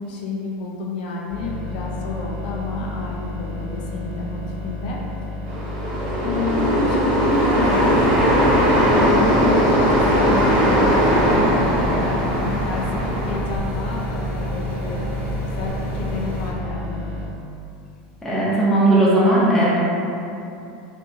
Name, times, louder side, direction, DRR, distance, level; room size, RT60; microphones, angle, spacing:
voice 1, 0.0-5.0 6.2-11.9 12.3-15.1 15.6-17.0, left 3 dB, 75° left, -2 dB, 0.4 m, -30 dB
sound 1, 1.3-17.3, left 2 dB, 75° right, 0.7 m, -31 dB
sound 2, 5.5-13.4, equal, 45° right, 0.9 m, -19 dB
sound 3, 7.6-16.5, right 1 dB, 40° left, 0.9 m, -30 dB
voice 2, 18.2-19.8, right 1 dB, 5° left, -9 dB, 0.6 m, -17 dB
2.7 x 2.5 x 2.3 m, 2.7 s
supercardioid pair, 150°, 5 cm